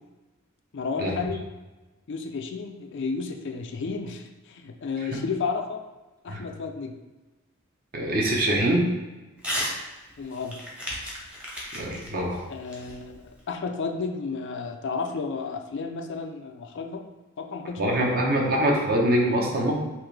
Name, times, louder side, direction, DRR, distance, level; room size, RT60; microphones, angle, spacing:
voice 1, 0.7-1.4 2.1-5.8 6.2-6.9 10.2-10.6 12.5-17.0 17.4-18.6, left 4 dB, 55° left, 4 dB, 0.4 m, -32 dB
voice 2, 7.9-8.9 11.7-12.4 17.8-19.7, right 1 dB, 45° right, -1 dB, 0.9 m, -23 dB
Crumpling crinkling / Tearing, 9.4-9.8 10.1-13.4, equal, 5° right, 0.8 m, -34 dB
5.7 x 2.6 x 3.3 m, 1.2 s
head